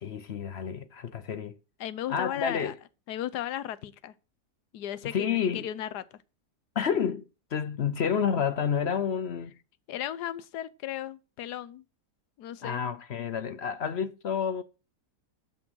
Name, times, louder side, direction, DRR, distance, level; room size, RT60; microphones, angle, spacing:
voice 1, 0.0-1.6 2.1-2.8 5.0-5.7 6.8-7.2 7.5-9.5 12.6-14.6, left 7 dB, 55° left, 0.7 m, -29 dB
voice 2, 1.8-2.7 3.1-4.1 4.7-5.3 5.5-6.2 9.9-11.8 12.4-12.8, left 11 dB, 75° left, 1.3 m, -35 dB
12.0 x 6.1 x 6.3 m
omnidirectional pair, 1.8 m